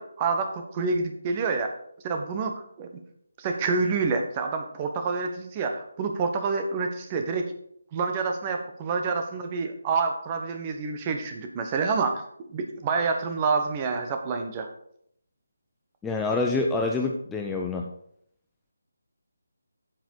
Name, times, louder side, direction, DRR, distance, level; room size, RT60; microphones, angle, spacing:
voice 1, 0.0-1.7 2.0-3.0 3.4-7.5 7.9-14.7, right 4 dB, 25° right, 5 dB, 1.1 m, -28 dB
voice 2, 16.0-17.9, left 3 dB, 5° left, 1 dB, 0.6 m, -26 dB
8.8 x 7.5 x 4.7 m, 0.69 s
figure-of-eight pair, 155°, 0 cm